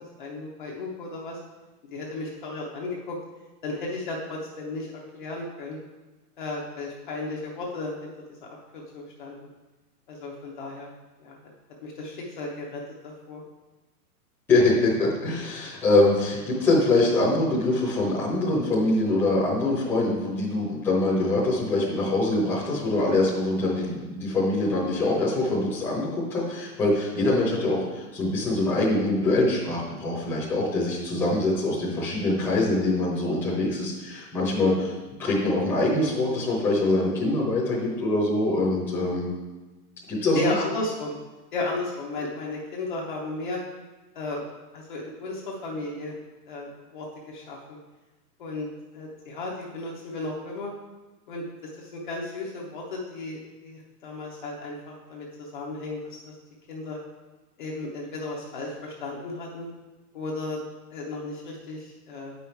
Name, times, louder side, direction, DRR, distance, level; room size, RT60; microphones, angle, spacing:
voice 1, 0.2-1.4 1.9-3.2 3.6-4.9 5.1-5.8 6.4-8.1 8.7-9.4 10.1-10.9 11.2-11.4 11.8-13.4 40.3-41.2 41.5-43.6 44.1-44.4 44.7-46.2 46.5-47.8 48.4-48.7 48.9-50.7 51.3-51.4 51.8-56.2 56.7-57.0 57.6-59.7 60.1-60.6 60.9-62.3, left 2 dB, 30° left, -3 dB, 0.8 m, -34 dB
voice 2, 14.5-34.9 35.2-39.3 40.1-40.5, left 2 dB, 5° left, -8 dB, 1.0 m, -24 dB
8.0 x 5.5 x 4.5 m, 1.2 s
hypercardioid pair, 170°, 48 cm